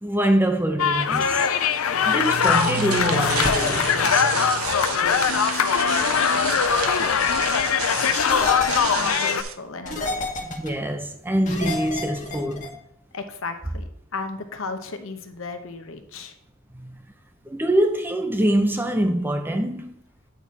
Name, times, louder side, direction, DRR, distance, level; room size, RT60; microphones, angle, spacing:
voice 1, 0.0-1.5 2.0-4.3 10.6-12.7 16.7-17.0 17.5-20.0, right 1 dB, 10° right, 0.6 m, -24 dB
sound 1, 0.8-9.4, left 7 dB, 85° left, 0.5 m, -22 dB
sound 2, 2.0-9.5, right 8 dB, 85° right, 0.7 m, -31 dB
sound 3, 3.4-3.7 5.1-5.3 6.7-6.9 8.3-9.1 9.9-10.7 11.5-12.7, left 4 dB, 35° left, 1.3 m, -29 dB
voice 2, 5.2-6.6 6.9-7.5 8.1-10.5 13.1-16.3, left 3 dB, 70° left, 0.9 m, -35 dB
8.9 x 4.2 x 4.7 m
head